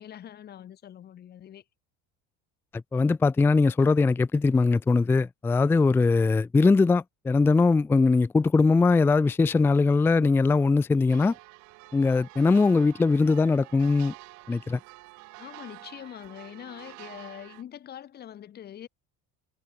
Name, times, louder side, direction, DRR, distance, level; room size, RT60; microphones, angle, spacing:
voice 1, 0.0-1.6 15.4-18.9, left 10 dB, 30° left, 2.6 m, -43 dB
voice 2, 2.7-11.3 11.9-14.1 14.5-14.8, left 3 dB, 5° left, 0.4 m, -21 dB
sound 1, 11.1-17.6, right 24 dB, 65° right, 2.5 m, -48 dB
cardioid pair, 170°, 31 cm